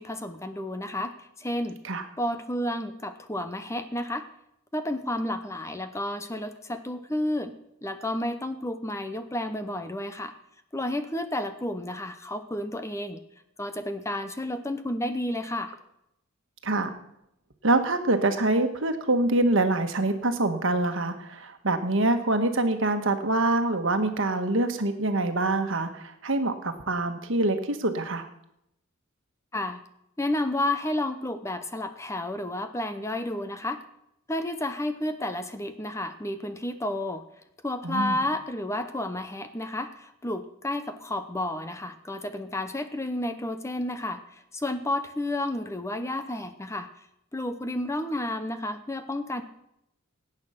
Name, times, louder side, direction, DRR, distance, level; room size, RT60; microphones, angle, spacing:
voice 1, 0.0-1.8 2.2-4.3 4.7-7.5 7.8-10.3 10.7-13.2 13.6-15.8 29.5-29.8 30.2-33.8 34.3-37.2 37.6-46.9 47.3-49.4, left 1 dB, 15° left, 9 dB, 0.8 m, -31 dB
voice 2, 17.6-28.3 37.8-38.2, right 2 dB, 65° right, 7 dB, 1.5 m, -25 dB
17.5 x 8.9 x 5.8 m, 0.79 s
head